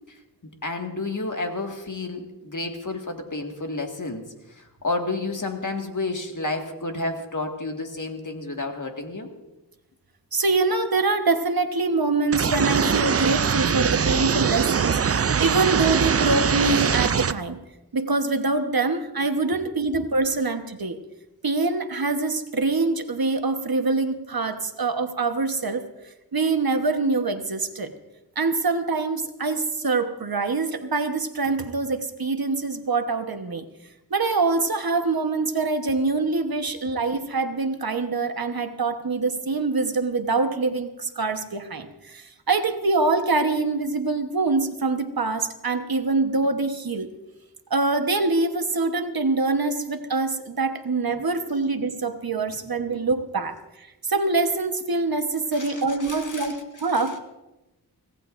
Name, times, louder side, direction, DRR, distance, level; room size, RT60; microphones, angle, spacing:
voice 1, 0.6-4.3 4.5-9.3 19.5-19.6 52.9-53.0 55.5-56.6, left 2 dB, 50° left, 2 dB, 2.0 m, -31 dB
voice 2, 10.3-17.6 17.9-21.0 21.4-25.9 26.3-27.9 28.4-33.7 34.1-47.2 47.7-57.2, right 3 dB, 60° right, 7 dB, 1.2 m, -24 dB
sound 1, 12.3-17.3, right 6 dB, 35° right, 0.4 m, -22 dB
24.5 x 17.5 x 2.6 m, 1.0 s
wide cardioid pair, 65°, 40 cm